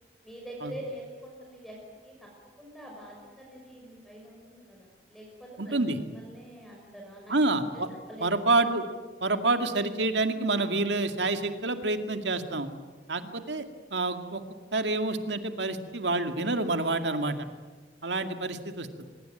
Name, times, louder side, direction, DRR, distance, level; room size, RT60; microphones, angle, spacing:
voice 1, 0.2-1.7 2.0-2.1 2.6-5.8 6.1-7.3 8.1-8.3 13.2-13.3, right 1 dB, ahead, -2 dB, 5.7 m, -44 dB
voice 2, 5.6-6.0 7.3-7.9 8.2-8.8 9.2-12.7 13.1-13.6 13.9-14.4 14.7-17.3 18.0-18.9, right 2 dB, 85° right, 7 dB, 2.2 m, -27 dB
24.5 x 22.0 x 9.3 m, 1.4 s
head